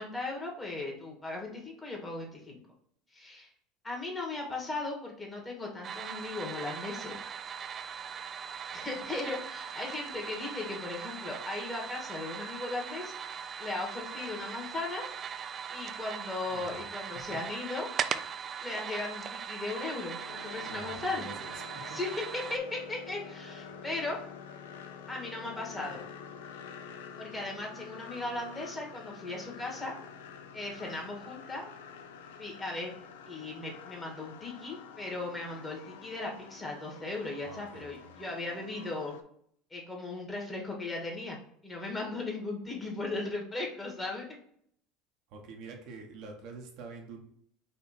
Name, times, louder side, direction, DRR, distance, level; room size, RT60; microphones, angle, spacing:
voice 1, 0.0-2.6 3.1-3.5 3.8-7.2 8.7-13.1 13.6-15.0 15.7-17.9 18.6-21.3 21.9-24.2 25.1-26.0 27.2-29.9 30.5-31.6 32.4-33.0 33.3-39.1 39.7-41.4 41.6-44.3, left 2 dB, 20° left, -1 dB, 1.7 m, -37 dB
sound 1, 5.8-22.6, right 7 dB, 40° right, 0.3 m, -40 dB
voice 2, 16.5-16.8 17.1-17.4 20.7-22.0 37.4-38.1 45.3-47.2, right 4 dB, 65° right, 2 dB, 1.0 m, -47 dB
sound 2, 20.2-39.2, left 6 dB, 80° left, 0.4 m, -48 dB
4.3 x 2.7 x 4.2 m, 0.66 s
hypercardioid pair, 85°, 0 cm